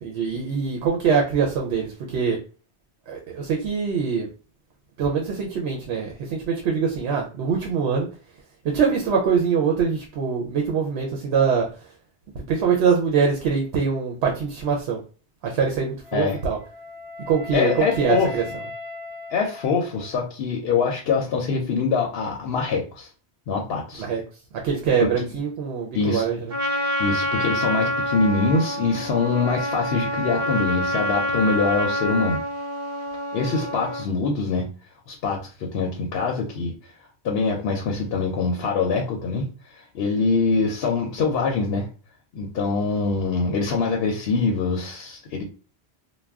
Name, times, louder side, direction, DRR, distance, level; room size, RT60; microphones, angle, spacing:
voice 1, 0.0-2.4 3.1-4.3 5.0-8.1 8.6-11.9 12.3-15.0 15.4-16.6 17.3-18.4 24.0-26.5, right 6 dB, 85° right, 0 dB, 0.9 m, -23 dB
Wind instrument woodwind instrument, 16.0-20.2, left 2 dB, 35° left, 0.7 m, -38 dB
voice 2, 17.5-18.3 19.3-23.1 23.5-24.0 25.0-25.1 25.9-26.2 27.0-32.4 33.3-34.7 35.1-36.7 37.2-41.9 42.3-45.4, left 4 dB, 75° left, 0 dB, 0.8 m, -24 dB
Trumpet, 26.5-34.1, equal, 65° right, 1.1 m, -27 dB
2.3 x 2.2 x 3.4 m, 0.37 s
omnidirectional pair, 1.1 m